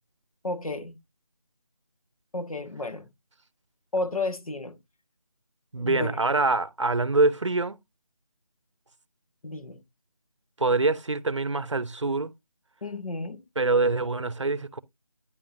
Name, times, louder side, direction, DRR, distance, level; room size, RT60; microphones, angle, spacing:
voice 1, 0.4-1.0 2.3-3.1 3.9-4.8 5.8-6.2 9.4-9.8 12.8-13.4, left 2 dB, 70° left, 1.4 m, -32 dB
voice 2, 5.7-7.8 10.6-12.3 13.6-14.8, right 3 dB, 50° right, 0.7 m, -25 dB
9.9 x 5.5 x 2.6 m
figure-of-eight pair, 180°, 19 cm